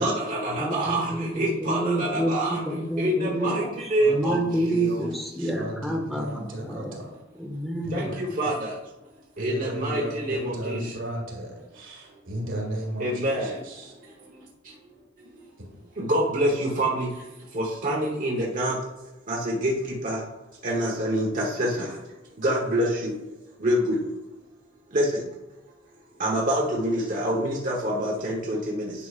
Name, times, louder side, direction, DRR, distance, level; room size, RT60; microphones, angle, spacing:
voice 1, 0.0-2.6 3.0-3.6 3.9-4.3 7.9-8.7 9.4-10.8 13.0-13.5 16.0-17.1 17.5-18.8 19.3-19.7 20.0-20.2 20.6-21.9 22.4-23.1 23.6-24.0 24.9-25.1 26.2-28.9, right 1 dB, 45° right, -3 dB, 1.0 m, -26 dB
voice 2, 0.6-7.0 7.3-8.1, right 1 dB, ahead, 1 dB, 0.9 m, -28 dB
voice 3, 4.0-5.1 5.4-7.1 7.8-8.1 9.4-13.9, right 1 dB, 75° right, -1 dB, 2.3 m, -35 dB
9.9 x 6.0 x 2.4 m, 1.1 s
head